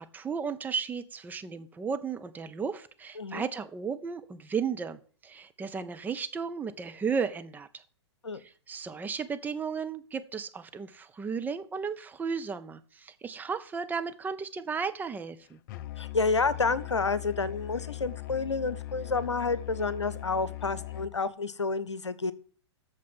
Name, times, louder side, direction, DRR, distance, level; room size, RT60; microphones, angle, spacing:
voice 1, 0.0-7.8 8.3-15.6, right 6 dB, 10° right, 9 dB, 0.6 m, -34 dB
Musical instrument, 15.7-21.2, left 15 dB, 45° left, 0.6 m, -40 dB
voice 2, 16.0-22.3, left 4 dB, 80° left, 16 dB, 0.9 m, -29 dB
8.4 x 6.8 x 7.5 m, 0.43 s
figure-of-eight pair, 105°, 15 cm